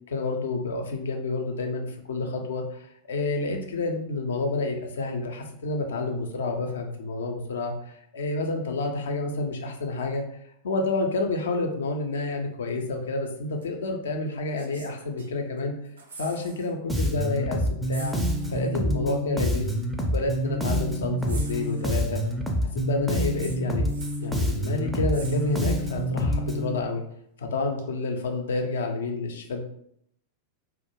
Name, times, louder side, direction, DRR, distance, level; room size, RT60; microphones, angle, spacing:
voice 1, 0.1-10.2 10.6-15.7 16.2-18.2 18.5-19.8 20.1-22.2 22.7-23.9 24.2-27.0 27.4-29.6, left 3 dB, 65° left, 3 dB, 0.4 m, -29 dB
sound 1, 13.6-13.7 14.5-15.6 15.9-16.7 17.0-17.2 17.9-18.8 19.8-19.9 21.3-22.3 23.4-24.4 25.1-26.0 27.8-27.9, right 3 dB, 70° right, 0.4 m, -45 dB
Bass guitar, 16.9-26.8, equal, 5° right, 0.4 m, -27 dB
2.2 x 2.0 x 2.9 m, 0.70 s
figure-of-eight pair, 90°, 0 cm